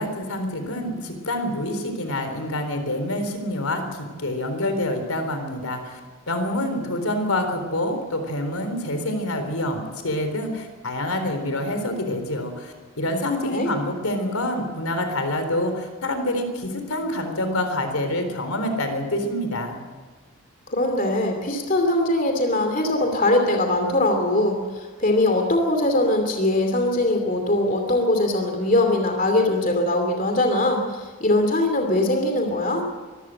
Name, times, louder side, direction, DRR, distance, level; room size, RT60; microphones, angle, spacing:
voice 1, 0.0-6.0 6.3-19.8, left 1 dB, 85° left, 7 dB, 3.9 m, -27 dB
voice 2, 20.7-32.8, left 1 dB, 40° left, 4 dB, 2.7 m, -21 dB
24.0 x 14.5 x 7.8 m, 1.4 s
head